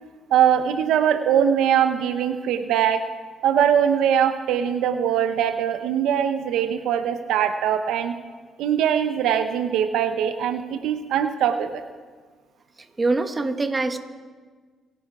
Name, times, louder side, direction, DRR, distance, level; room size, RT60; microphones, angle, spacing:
voice 1, 0.3-3.0 3.4-8.1 8.6-11.8, right 9 dB, 85° right, 8 dB, 0.8 m, -21 dB
voice 2, 13.0-14.0, right 3 dB, 25° right, 7 dB, 1.3 m, -23 dB
28.0 x 11.0 x 4.8 m, 1.5 s
cardioid pair, 90°, 0 cm